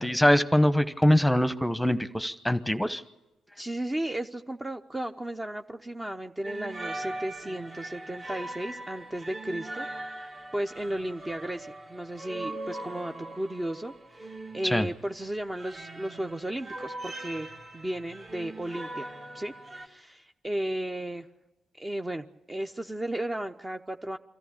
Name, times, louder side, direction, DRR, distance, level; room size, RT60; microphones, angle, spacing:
voice 1, 0.0-3.0 14.6-14.9, left 1 dB, 5° left, 12 dB, 1.1 m, -23 dB
voice 2, 3.6-9.9 10.5-17.5 17.7-19.5 19.8-21.3 21.8-24.2, right 1 dB, 20° right, 5 dB, 0.8 m, -34 dB
sound 1, 6.4-19.9, right 2 dB, 40° right, 2.2 m, -40 dB
24.0 x 14.0 x 8.7 m, 1.0 s
hypercardioid pair, 45°, 0 cm